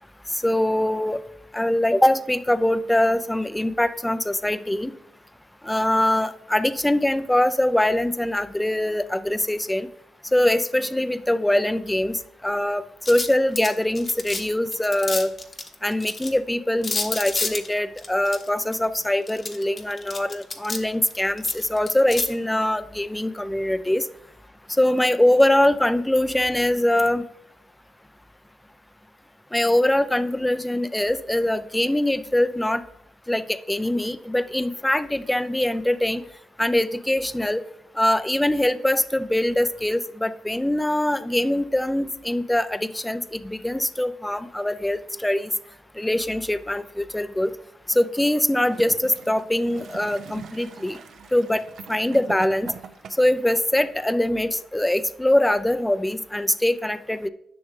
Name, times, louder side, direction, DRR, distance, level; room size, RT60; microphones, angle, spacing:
voice 1, 0.3-1.2 1.5-4.9 5.6-9.9 10.3-15.3 15.8-24.1 24.8-27.2 29.5-32.8 33.3-36.2 36.6-37.6 38.0-45.5 46.0-47.5 47.9-51.0 51.3-51.6 51.9-52.7 53.2-57.3, left 1 dB, 10° left, 13 dB, 0.4 m, -23 dB
sound 1, 13.1-14.4 14.7-16.3 16.8-18.7 19.3-20.8 21.1-22.3, left 3 dB, 30° left, 1.0 m, -30 dB
Gurgling / Toilet flush, 48.5-53.4 54.3-54.4, right 7 dB, 65° right, 0.6 m, -42 dB
10.5 x 6.1 x 3.3 m, 0.76 s
cardioid pair, 90°, 0 cm